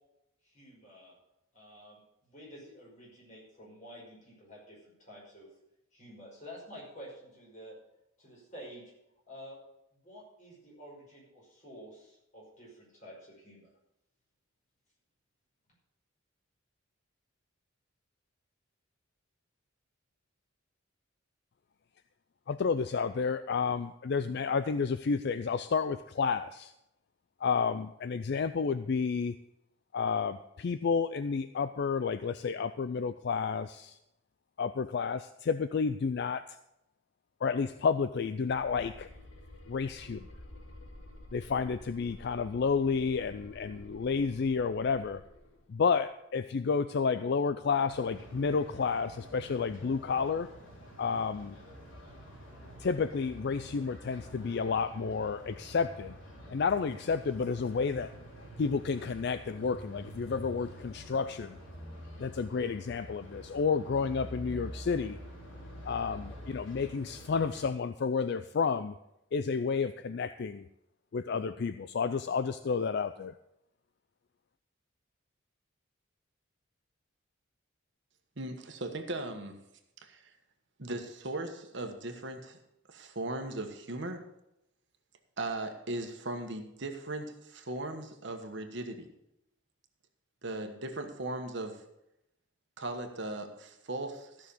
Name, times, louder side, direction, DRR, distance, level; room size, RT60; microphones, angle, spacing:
voice 1, 0.4-1.1 1.5-5.5 5.9-7.8 8.2-8.9 9.3-9.6 10.0-13.7, equal, 35° left, -4 dB, 5.7 m, -50 dB
voice 2, 22.5-26.7 27.4-29.4 29.9-34.0 34.6-36.6 37.4-39.1 39.7-40.3 41.3-45.2 45.7-50.5 51.0-51.6 52.8-56.2 56.5-58.1 58.6-61.6 62.2-65.2 65.8-68.9 69.3-70.7 71.1-73.3, left 5 dB, 55° left, 12 dB, 0.4 m, -31 dB
sound 1, 38.5-45.7, left 1 dB, 90° left, 1.7 m, -51 dB
sound 2, 47.9-67.7, equal, 70° left, 4.1 m, -47 dB
voice 3, 78.4-79.5 80.0-80.3 80.8-82.6 82.9-84.2 85.4-89.1 90.4-91.8 92.8-94.5, right 2 dB, 60° right, 5 dB, 1.3 m, -38 dB
14.0 x 6.2 x 6.9 m, 0.85 s
head